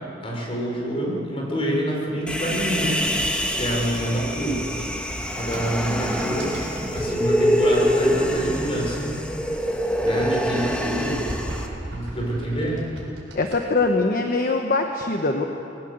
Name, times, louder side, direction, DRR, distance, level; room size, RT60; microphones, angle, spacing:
voice 1, 0.2-3.0 3.5-4.7 5.3-6.6 6.9-9.1 10.0-11.3 11.9-12.9, right 1 dB, 30° left, -2 dB, 4.9 m, -27 dB
Human voice, 2.3-11.7, equal, 5° left, 1.4 m, -25 dB
sound 1, 3.6-7.2 7.9-9.2 9.5-13.6, right 1 dB, 70° right, 6.8 m, -38 dB
voice 2, 13.4-15.4, left 3 dB, 50° left, 4 dB, 1.1 m, -22 dB
20.5 x 17.5 x 8.0 m, 2.8 s
head